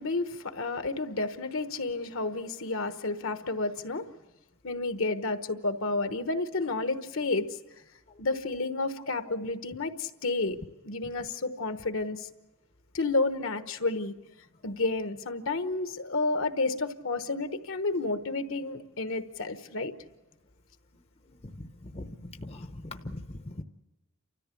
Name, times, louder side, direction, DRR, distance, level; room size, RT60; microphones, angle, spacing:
voice 1, 0.0-4.1 4.6-7.6 8.2-10.6 10.9-12.3 12.9-14.1 14.6-19.9, left 3 dB, 65° left, 9 dB, 1.1 m, -31 dB
voice 2, 21.3-23.6, left 1 dB, 30° left, 7 dB, 0.8 m, -42 dB
30.0 x 14.0 x 8.4 m, 1.1 s
head